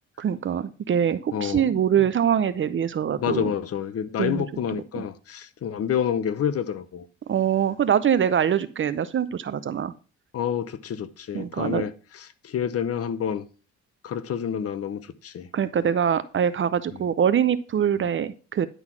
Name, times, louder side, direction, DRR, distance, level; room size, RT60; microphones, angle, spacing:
voice 1, 0.2-3.5 4.2-4.4 4.9-5.0 7.3-9.9 11.3-11.8 15.5-18.7, right 8 dB, 40° right, 0.5 m, -23 dB
voice 2, 1.3-1.7 2.0-2.1 3.2-7.1 10.3-13.4 14.0-15.5 16.9-17.0, left 8 dB, 50° left, 0.8 m, -28 dB
10.5 x 3.9 x 6.0 m
cardioid pair, 90°, 30 cm